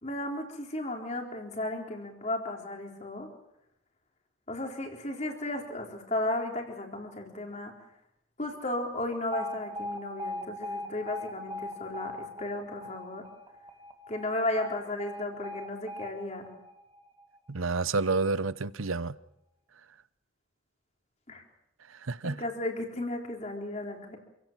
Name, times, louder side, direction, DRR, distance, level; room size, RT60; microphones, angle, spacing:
voice 1, 0.0-3.3 4.5-7.7 8.4-13.2 14.1-16.5 21.3-21.4 22.2-24.2, left 1 dB, 35° left, 4.1 m, -34 dB
Alarm, 9.3-17.4, left 1 dB, 20° right, 1.9 m, -40 dB
voice 2, 17.5-19.2 22.0-22.4, right 3 dB, 85° right, 0.8 m, -29 dB
27.5 x 16.5 x 7.5 m
head